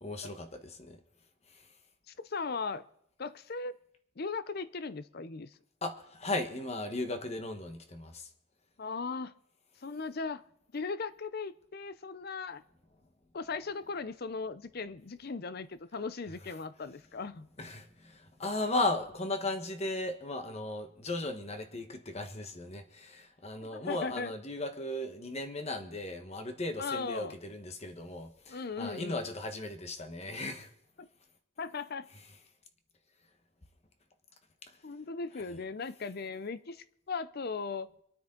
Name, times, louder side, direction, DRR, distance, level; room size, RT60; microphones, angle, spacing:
voice 1, 0.0-1.0 5.8-8.3 17.6-30.7, left 2 dB, 30° left, 1.2 m, -36 dB
voice 2, 2.1-2.8 3.2-3.7 4.2-5.5 8.8-9.3 9.8-10.4 10.7-12.6 13.3-17.5 23.6-24.3 26.8-27.4 28.5-29.2 31.0-31.1 31.6-32.1 34.8-37.9, left 4 dB, 45° left, 0.5 m, -38 dB
26.0 x 9.3 x 3.8 m
head